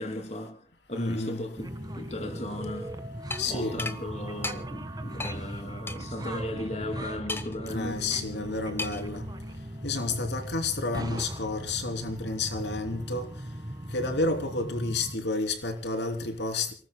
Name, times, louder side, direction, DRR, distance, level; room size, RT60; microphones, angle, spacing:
voice 1, 0.0-2.9 3.4-8.2, left 1 dB, 40° left, 3.1 m, -36 dB
voice 2, 0.9-1.5 3.4-3.9 7.7-9.2 9.8-13.2 13.9-16.7, left 3 dB, 75° left, 3.2 m, -30 dB
sound 1, 1.6-15.2, right 1 dB, 25° right, 1.8 m, -38 dB
sound 2, 3.3-3.4 3.8-4.0 4.4-4.6 5.2-5.4 5.9-6.0 7.3-7.7 8.8-9.1, left 2 dB, 15° left, 1.1 m, -33 dB
28.5 x 19.5 x 2.3 m
head